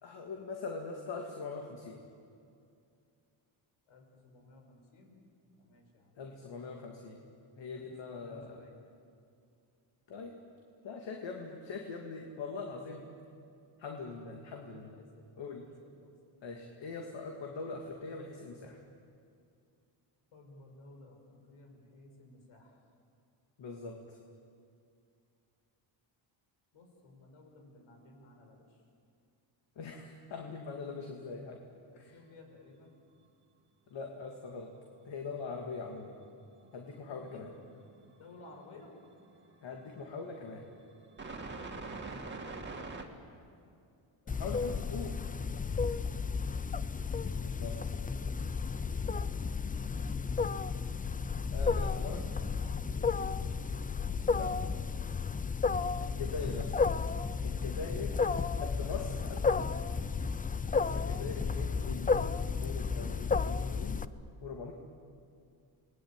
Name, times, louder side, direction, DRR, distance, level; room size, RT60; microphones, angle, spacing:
voice 1, 0.0-2.0 6.2-7.2 7.6-8.7 10.1-10.4 10.8-13.1 13.8-15.0 15.4-15.7 16.4-18.8 23.6-24.2 29.8-31.6 31.9-32.2 33.9-34.7 35.0-36.1 36.7-37.5 39.6-40.7 44.3-45.2 47.4-47.9 51.5-52.4 54.3-54.6 56.0-56.8 57.4-58.1 58.6-59.4 60.7-64.0 64.4-64.7, left 4 dB, 60° left, 2 dB, 2.8 m, -42 dB
voice 2, 3.9-5.2 5.6-6.6 7.7-8.8 15.0-15.2 15.6-16.1 20.3-22.8 26.7-28.8 30.9-31.4 32.1-33.0 37.3-37.5 38.2-39.0 41.5-42.0 42.8-43.0 44.2-46.2 47.7-48.3 51.3-51.7 53.0-53.3 58.0-58.3 58.6-60.0, left 2 dB, 80° left, 3 dB, 6.1 m, -56 dB
sound 1, 35.0-35.1 36.4-37.3 37.6-43.0, right 3 dB, 20° right, 2.7 m, -46 dB
Wild animals, 44.3-64.0, left 5 dB, 20° left, 0.5 m, -33 dB
28.5 x 20.5 x 9.2 m, 2.4 s
cardioid pair, 120°, 48 cm